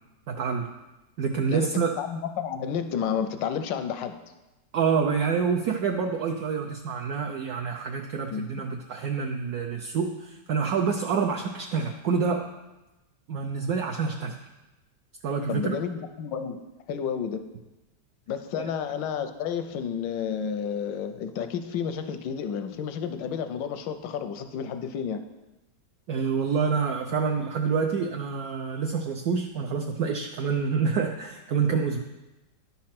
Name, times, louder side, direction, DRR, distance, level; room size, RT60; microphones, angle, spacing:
voice 1, 0.3-0.7 1.2-1.9 4.7-12.5 13.3-14.4 15.2-15.8 18.6-18.7 26.1-32.0, right 5 dB, 65° right, 3 dB, 1.0 m, -27 dB
voice 2, 2.0-4.2 8.3-8.5 15.5-16.6 16.9-17.4 18.3-25.2, left 7 dB, 85° left, 8 dB, 1.4 m, -31 dB
10.5 x 4.3 x 5.8 m, 1.0 s
omnidirectional pair, 1.9 m